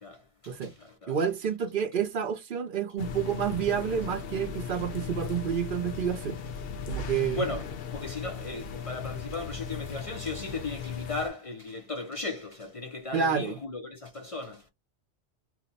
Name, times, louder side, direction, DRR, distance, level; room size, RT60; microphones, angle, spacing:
voice 1, 0.0-1.2 7.4-7.6 7.9-14.7, left 3 dB, 45° left, 0.4 m, -36 dB
voice 2, 1.1-6.4 6.9-7.5 13.1-13.6, right 7 dB, 55° right, 0.7 m, -29 dB
sound 1, 3.0-11.3, left 5 dB, 60° left, 0.8 m, -37 dB
2.7 x 2.0 x 3.9 m
omnidirectional pair, 1.2 m